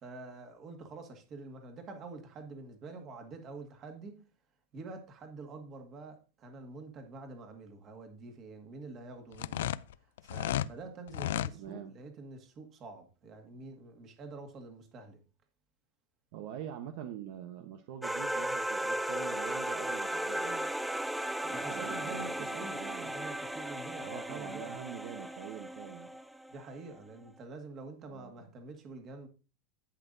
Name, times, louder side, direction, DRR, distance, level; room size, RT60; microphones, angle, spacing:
voice 1, 0.0-4.2 4.7-9.7 10.2-15.2 21.5-24.8 26.5-29.3, right 3 dB, 30° right, 1.8 m, -47 dB
sound 1, 9.3-10.7 11.1-11.5, left 12 dB, 80° left, 0.4 m, -33 dB
voice 2, 11.5-12.0 16.3-20.7 21.4-23.1 24.0-26.1 28.1-28.3, right 10 dB, 55° right, 0.9 m, -45 dB
sound 2, 18.0-26.6, right 1 dB, ahead, 0.4 m, -36 dB
11.5 x 8.2 x 2.7 m
supercardioid pair, 155°, 0 cm